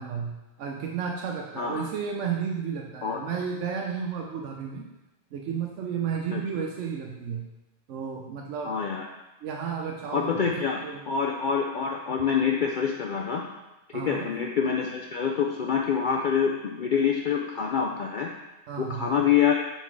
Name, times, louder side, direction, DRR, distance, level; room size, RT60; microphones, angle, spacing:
voice 1, 0.0-4.9 5.3-7.5 7.9-8.7 9.4-11.0 13.9-14.3 18.7-19.2, right 6 dB, 85° right, 1 dB, 1.0 m, -32 dB
voice 2, 8.6-9.1 10.1-10.8 11.1-13.4 13.9-18.3 18.8-19.6, left 7 dB, 60° left, 1 dB, 0.5 m, -26 dB
5.7 x 4.2 x 4.6 m, 0.99 s
omnidirectional pair, 1.2 m